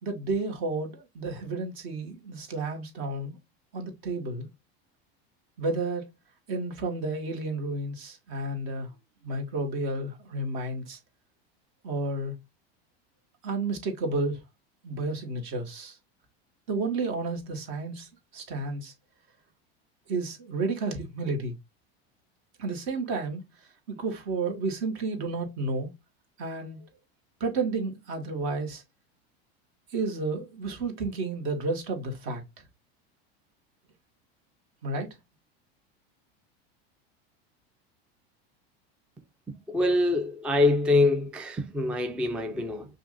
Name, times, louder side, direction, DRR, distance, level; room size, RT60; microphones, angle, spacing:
voice 1, 0.0-3.4 3.7-4.5 5.6-6.1 6.5-8.9 9.2-11.0 11.8-12.3 13.4-14.4 14.8-16.0 16.7-18.9 20.1-21.6 22.6-23.4 23.9-25.9 26.4-26.8 27.4-28.8 29.9-32.4 34.8-35.1, right 3 dB, 55° right, 2.0 m, -31 dB
voice 2, 39.7-42.9, left 2 dB, 5° right, 0.3 m, -24 dB
5.7 x 2.7 x 2.5 m
supercardioid pair, 130°, 31 cm